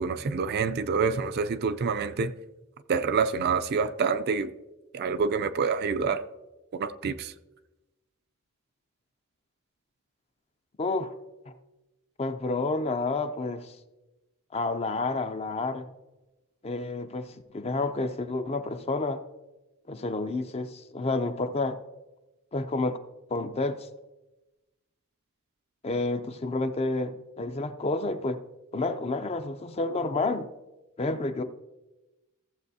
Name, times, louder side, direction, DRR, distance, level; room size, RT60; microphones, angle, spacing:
voice 1, 0.0-2.3 2.9-4.5 4.9-6.2 6.7-7.3, right 5 dB, 45° right, 0.4 m, -27 dB
voice 2, 10.8-11.1 11.5-11.6 12.2-13.7 14.5-15.9 16.6-19.2 19.9-21.8 22.5-23.0 23.3-23.9 25.8-28.4 28.7-30.5 31.0-31.4, left 2 dB, 30° left, 0.4 m, -29 dB
14.5 x 7.4 x 2.7 m
head